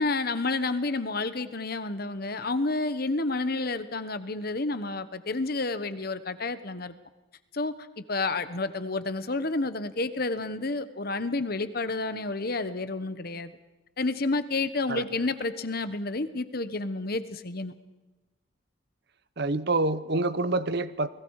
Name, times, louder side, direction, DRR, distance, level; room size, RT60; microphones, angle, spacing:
voice 1, 0.0-6.9 7.5-13.6 14.0-17.7, left 3 dB, 50° left, 1.2 m, -30 dB
voice 2, 19.4-21.1, right 2 dB, 55° right, 0.9 m, -27 dB
29.5 x 20.5 x 4.9 m
head